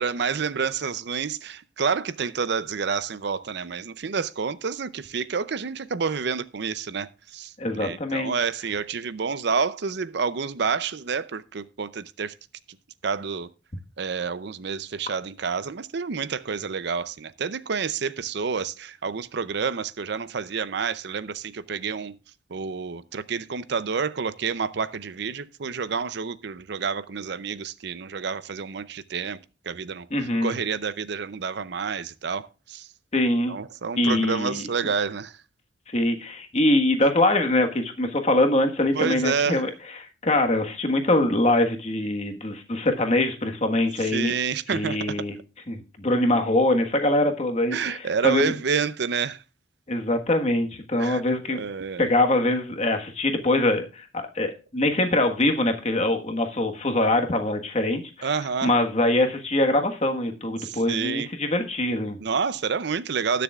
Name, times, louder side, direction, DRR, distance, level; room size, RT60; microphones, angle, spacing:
voice 1, 0.0-7.1 7.3-12.3 13.0-13.5 14.0-22.2 22.5-29.4 29.7-30.1 30.4-32.8 33.5-35.3 38.9-39.6 44.1-45.1 47.7-49.4 51.0-51.2 51.6-52.1 58.2-58.7 60.6-61.3 62.2-63.4, right 5 dB, 60° right, 0.6 m, -29 dB
voice 2, 7.6-8.5 30.1-30.6 33.1-33.6 34.0-34.7 35.9-44.3 44.7-45.3 45.7-48.5 49.9-51.6 52.0-62.2, left 1 dB, 35° left, 1.4 m, -23 dB
19.5 x 6.8 x 2.4 m
head